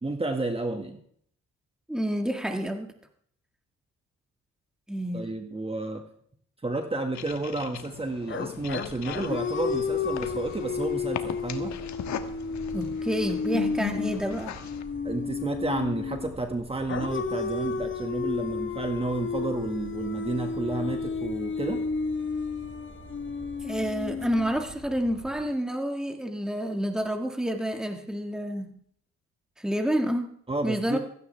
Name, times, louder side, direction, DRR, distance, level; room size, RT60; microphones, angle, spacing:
voice 1, 0.0-1.0 5.1-6.0 6.6-11.8 15.0-21.8 30.5-31.0, right 2 dB, 20° right, 5 dB, 1.8 m, -31 dB
voice 2, 1.9-2.9 4.9-5.3 12.7-14.6 23.6-28.7 29.6-30.3 30.6-31.0, equal, ahead, 4 dB, 1.9 m, -29 dB
sound 1, 7.1-14.8, left 9 dB, 70° left, 1.3 m, -39 dB
sound 2, 8.3-16.3 16.9-25.0, left 5 dB, 40° left, 1.3 m, -32 dB
sound 3, 8.5-25.4, right 3 dB, 40° right, 5.8 m, -47 dB
16.0 x 15.5 x 3.4 m, 0.64 s
cardioid pair, 90°, 30 cm